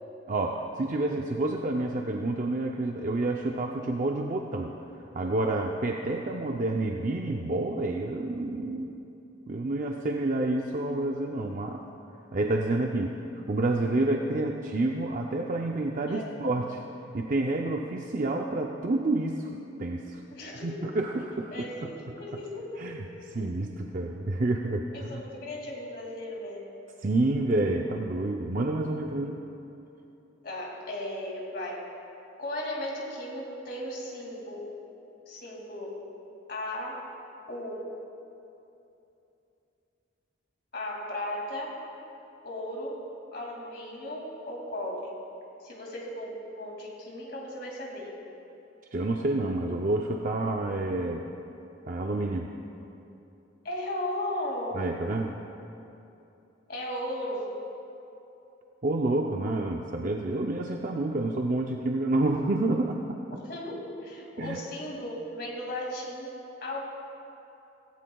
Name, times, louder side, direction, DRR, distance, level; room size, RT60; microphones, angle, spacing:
voice 1, 0.3-4.7 5.1-8.9 9.5-11.8 12.3-13.1 13.5-16.8 17.1-19.5 19.8-20.2 20.6-21.5 21.8-22.2 22.8-25.2 27.0-29.4 48.9-51.3 51.9-52.5 54.7-55.3 58.8-63.2 64.4-64.6, right 2 dB, 45° right, 1 dB, 0.5 m, -29 dB
voice 2, 20.3-20.9 21.5-22.8 23.2-23.3 24.9-26.8 30.4-31.9 32.4-34.7 35.3-36.1 36.5-37.1 37.5-37.9 40.7-41.8 42.4-43.1 43.3-45.2 45.6-48.1 53.6-54.8 56.7-57.6 63.4-66.8, left 1 dB, 55° left, -1 dB, 2.4 m, -36 dB
17.0 x 16.0 x 2.3 m, 2.9 s
head